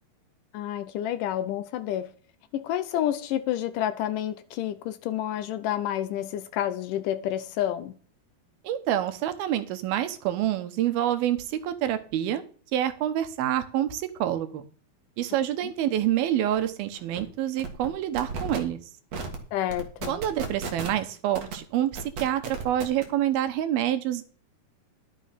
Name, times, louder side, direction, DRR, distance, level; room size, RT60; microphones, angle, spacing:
voice 1, 0.5-2.1 2.5-7.9 15.6-15.7 19.5-20.2, left 11 dB, 80° left, 1.9 m, -29 dB
voice 2, 8.6-12.4 12.7-14.6 15.2-18.8 20.1-24.2, right 11 dB, 80° right, 2.8 m, -27 dB
sound 1, 16.5-16.6 16.9-17.2 17.6-17.9 18.2-18.6 19.1-19.4 19.7-21.0 21.3-21.5 22.0-23.0, right 4 dB, 50° right, 2.5 m, -34 dB
11.5 x 6.1 x 5.7 m
omnidirectional pair, 4.4 m